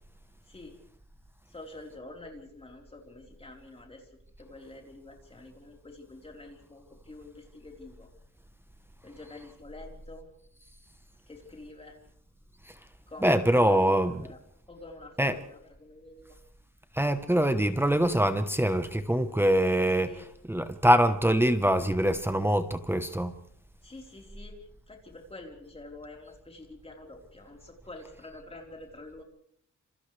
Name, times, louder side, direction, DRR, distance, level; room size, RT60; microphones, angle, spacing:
voice 1, 1.5-4.1 4.4-8.1 9.0-10.3 11.3-12.0 13.1-14.4 14.7-16.4 20.1-20.2 23.8-29.2, left 2 dB, 20° left, 4.0 m, -47 dB
voice 2, 13.2-14.1 15.2-15.4 16.9-23.3, equal, 5° right, 1.0 m, -24 dB
29.5 x 27.0 x 3.3 m
wide cardioid pair, 170°, 30 cm